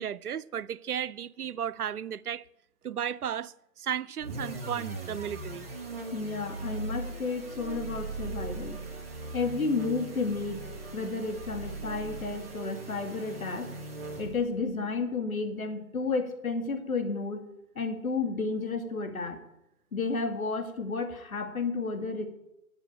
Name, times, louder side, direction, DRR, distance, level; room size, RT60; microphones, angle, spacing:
voice 1, 0.0-2.4 2.8-5.7, right 9 dB, 85° right, 0.6 m, -34 dB
sound 1, 4.2-14.6, right 3 dB, 10° right, 0.8 m, -39 dB
voice 2, 6.1-8.8 9.3-10.7 10.9-13.7 14.2-17.4 17.8-19.4 19.9-22.3, left 4 dB, 70° left, 2.4 m, -32 dB
9.0 x 7.2 x 8.8 m
hypercardioid pair, 160°, 44 cm